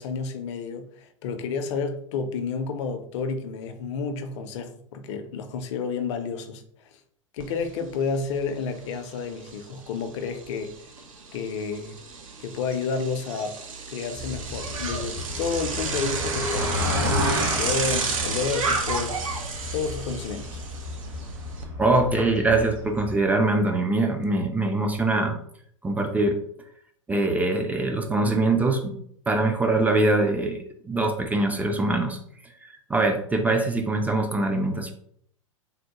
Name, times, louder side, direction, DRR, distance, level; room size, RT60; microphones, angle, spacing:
voice 1, 0.0-6.6 6.9-7.0 7.3-10.7 11.3-12.0 12.4-13.6 13.9-19.1 19.7-20.6, left 5 dB, 60° left, 8 dB, 0.5 m, -30 dB
Bicycle, 7.4-7.5 7.9-21.6, right 4 dB, 75° right, 0.6 m, -33 dB
sound 1, 14.2-23.1, left 1 dB, 45° right, 1.1 m, -31 dB
voice 2, 21.8-25.4 25.8-26.4 27.1-29.0 29.3-32.2 32.9-34.9, right 2 dB, 10° right, 4 dB, 0.3 m, -23 dB
3.5 x 2.1 x 2.9 m, 0.65 s
hypercardioid pair, 100°, 17 cm